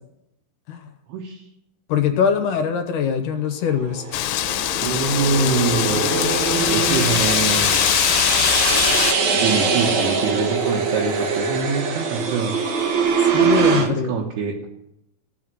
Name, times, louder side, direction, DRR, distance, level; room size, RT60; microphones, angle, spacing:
voice 1, 1.1-1.4 4.8-6.1 6.6-7.9 9.3-12.5 13.8-14.7, right 5 dB, 80° right, -3 dB, 3.3 m, -24 dB
voice 2, 1.9-4.3 13.3-14.1, left 7 dB, 70° left, 6 dB, 2.1 m, -22 dB
sound 1, 3.8-13.9, right 5 dB, 60° right, 2.1 m, -22 dB
Wind, 4.1-9.1, left 14 dB, 85° left, 2.7 m, -21 dB
15.0 x 5.7 x 9.0 m, 0.84 s
omnidirectional pair, 4.6 m